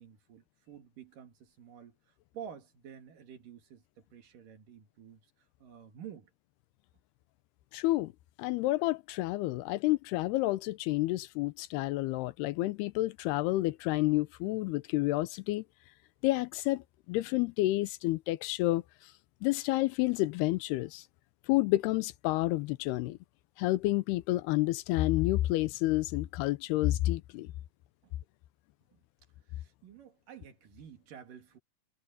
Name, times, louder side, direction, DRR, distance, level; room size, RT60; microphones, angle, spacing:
voice 1, 0.0-5.3 5.6-6.3 28.0-28.2 28.9-29.0 29.5-31.6, right 8 dB, 60° right, 3.6 m, -50 dB
voice 2, 7.7-8.1 8.4-15.6 16.2-18.8 19.4-21.0 21.5-23.2 23.6-27.5, left 18 dB, 90° left, 2.8 m, -29 dB
omnidirectional pair, 4.6 m